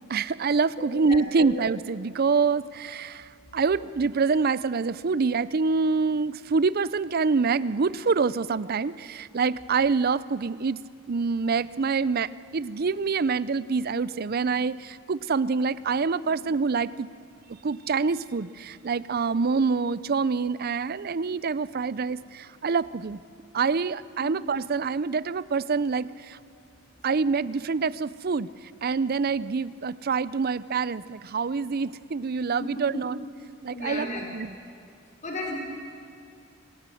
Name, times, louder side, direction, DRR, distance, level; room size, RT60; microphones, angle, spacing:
voice 1, 0.1-10.8 11.1-17.1 17.6-23.2 23.5-26.4 27.0-28.5 28.8-33.2 33.6-34.1 34.3-34.6, right 4 dB, 50° right, 18 dB, 0.5 m, -26 dB
voice 2, 1.1-1.5 24.2-24.3 33.7-34.2 35.2-35.6, left 2 dB, 40° left, 0 dB, 3.7 m, -33 dB
25.0 x 19.0 x 7.8 m, 2.4 s
head